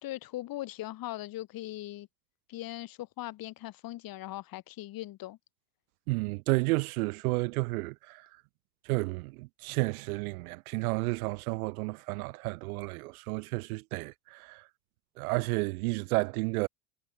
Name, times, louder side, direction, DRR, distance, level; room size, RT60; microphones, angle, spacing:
voice 1, 0.0-2.1 2.5-5.4, left 15 dB, 50° left, 3.1 m, -40 dB
voice 2, 6.1-8.3 8.8-14.7 15.2-16.7, right 25 dB, 70° right, 2.5 m, -31 dB
hypercardioid pair, 80°, 46 cm